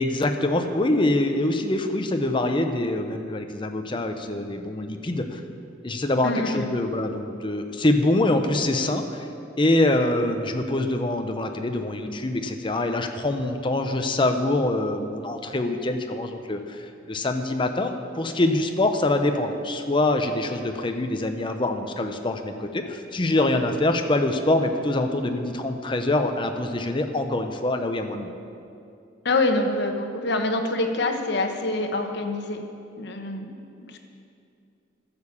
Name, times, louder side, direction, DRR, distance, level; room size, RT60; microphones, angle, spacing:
voice 1, 0.0-5.4 5.8-9.3 9.6-28.3, left 2 dB, 25° left, 5 dB, 0.7 m, -24 dB
voice 2, 6.2-6.7 29.2-32.6 33.0-33.5 33.8-34.0, left 2 dB, 65° left, 5 dB, 1.1 m, -26 dB
12.5 x 6.9 x 7.2 m, 2.6 s
head